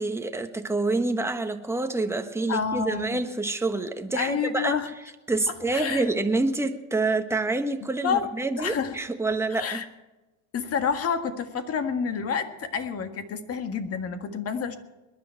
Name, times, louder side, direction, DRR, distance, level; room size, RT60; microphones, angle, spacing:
voice 1, 0.0-4.8 5.3-9.8, right 3 dB, 5° right, 6 dB, 1.3 m, -27 dB
voice 2, 2.5-3.2 4.1-4.9 5.7-6.1 8.0-8.3 8.6-9.0 9.5-9.9 10.5-14.8, left 6 dB, 35° left, 8 dB, 1.7 m, -28 dB
21.5 x 10.5 x 4.6 m, 1.1 s
supercardioid pair, 110°, 41 cm